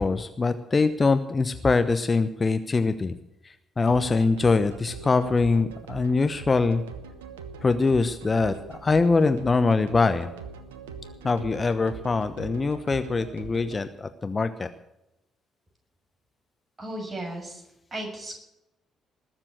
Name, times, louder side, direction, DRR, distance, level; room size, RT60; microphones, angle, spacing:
voice 1, 0.0-3.1 3.8-6.8 7.6-10.3 11.2-14.7, left 4 dB, 30° left, 10 dB, 0.9 m, -23 dB
sound 1, 3.8-13.8, right 5 dB, 75° right, 1.1 m, -42 dB
voice 2, 16.8-17.6 17.9-18.4, right 1 dB, 25° right, 2 dB, 6.7 m, -35 dB
20.0 x 7.4 x 8.0 m, 0.88 s
figure-of-eight pair, 45°, 0 cm